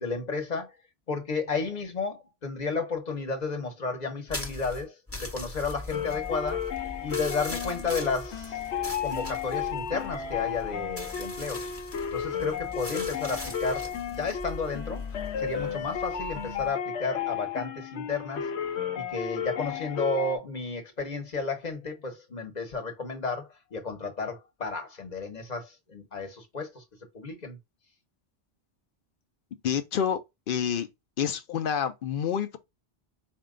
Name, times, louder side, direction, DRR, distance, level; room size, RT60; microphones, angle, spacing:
voice 1, 0.0-0.7 1.1-6.6 7.0-11.7 12.1-15.0 15.4-18.5 18.9-26.8 27.1-27.6, left 4 dB, 45° left, 1.0 m, -32 dB
sound 1, 4.3-16.7, left 2 dB, 15° left, 1.0 m, -41 dB
sound 2, 5.9-20.4, left 8 dB, 90° left, 1.0 m, -33 dB
voice 2, 29.6-30.2 30.5-30.9 31.2-32.6, left 8 dB, 60° left, 0.7 m, -28 dB
4.3 x 2.2 x 3.6 m
omnidirectional pair, 1.1 m